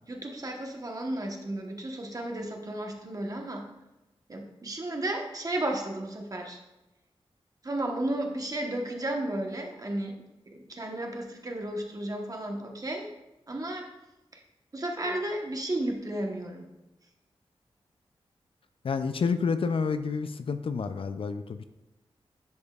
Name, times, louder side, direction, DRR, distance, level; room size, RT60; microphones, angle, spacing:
voice 1, 0.1-3.7 4.3-6.6 7.6-10.2 10.5-13.1 13.5-13.9 14.3-14.4 14.7-16.7, right 1 dB, 35° right, 2 dB, 1.1 m, -33 dB
voice 2, 18.8-21.6, left 5 dB, 65° left, 10 dB, 0.4 m, -29 dB
10.5 x 5.2 x 2.4 m, 1.0 s
wide cardioid pair, 95°, 10 cm